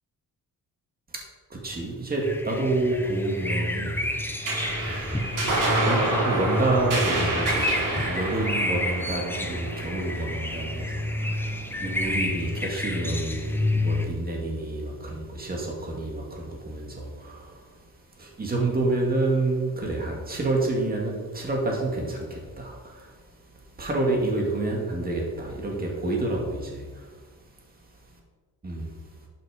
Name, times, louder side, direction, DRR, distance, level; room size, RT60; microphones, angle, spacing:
voice 1, 1.5-4.2 4.7-6.0 6.2-17.8 18.1-27.5 28.6-29.0, right 2 dB, 25° right, -1 dB, 2.3 m, -29 dB
sound 1, 2.2-14.0, left 1 dB, 5° left, 1.0 m, -29 dB
sound 2, 4.4-11.2, right 2 dB, 65° right, 3.8 m, -28 dB
12.0 x 6.8 x 5.1 m, 1.5 s
cardioid pair, 140°, 34 cm